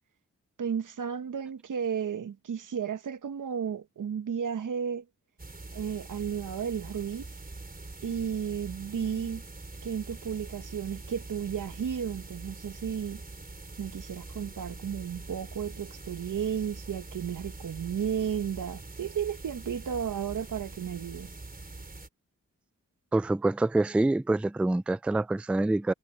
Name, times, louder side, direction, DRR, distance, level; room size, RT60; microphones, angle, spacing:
voice 1, 0.6-5.0 5.7-7.3 8.0-9.4 9.8-13.2 13.8-21.3, right 8 dB, 85° right, 1.1 m, -33 dB
sound 1, 5.4-22.1, right 3 dB, 30° right, 4.8 m, -44 dB
voice 2, 23.1-25.9, right 2 dB, 5° right, 0.3 m, -26 dB
wide cardioid pair, 105°, 31 cm